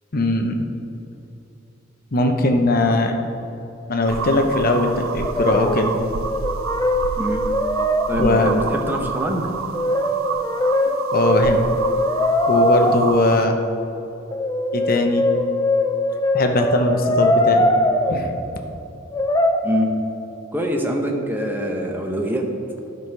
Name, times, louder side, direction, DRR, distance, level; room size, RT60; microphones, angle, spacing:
voice 1, 0.1-0.6 2.1-3.2 3.9-5.9 8.2-8.5 11.1-11.6 12.5-13.6 14.7-15.2 16.3-17.7 18.1-18.3, left 2 dB, 45° left, 4 dB, 0.8 m, -20 dB
sound 1, 4.1-13.4, right 5 dB, 80° right, 0.4 m, -29 dB
Brass instrument, 5.3-5.9 6.2-8.7 9.7-12.9 14.3-18.1 19.1-19.6, left 1 dB, 15° left, 0.4 m, -21 dB
voice 2, 8.1-9.5 19.6-19.9 20.5-22.5, equal, 10° right, 1 dB, 0.9 m, -24 dB
12.0 x 5.5 x 4.7 m, 3.0 s
head